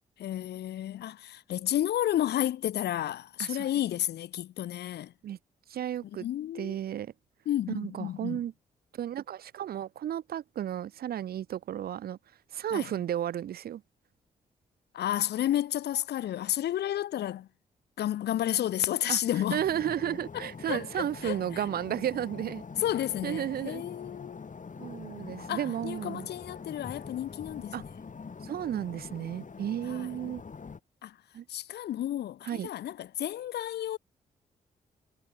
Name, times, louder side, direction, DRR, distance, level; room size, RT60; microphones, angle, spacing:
voice 1, 0.2-5.1 6.2-6.8 7.5-8.4 12.7-12.9 14.9-17.5 18.0-19.6 20.7-21.6 22.8-24.5 25.5-27.7 29.9-30.1 31.0-31.2 31.5-34.0, left 12 dB, 75° left, 0.9 m, -31 dB
voice 2, 5.7-6.3 6.5-7.1 7.7-8.5 8.9-12.2 12.5-13.8 19.1-19.2 19.5-22.6 23.2-23.8 24.8-26.3 27.7-27.8 28.4-30.4 31.3-31.4 32.4-32.7, right 10 dB, 65° right, 0.6 m, -33 dB
sound 1, 19.6-30.8, left 5 dB, 50° left, 5.3 m, -44 dB
supercardioid pair, 45°, 17 cm